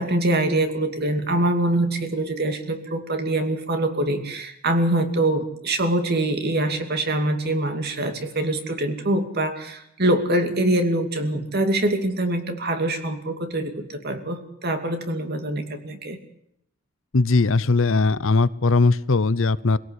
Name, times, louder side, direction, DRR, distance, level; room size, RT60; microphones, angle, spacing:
voice 1, 0.0-16.2, right 1 dB, 50° right, 6 dB, 2.7 m, -24 dB
voice 2, 17.1-19.8, left 3 dB, 65° left, 17 dB, 0.8 m, -19 dB
24.0 x 17.5 x 8.3 m, 0.76 s
head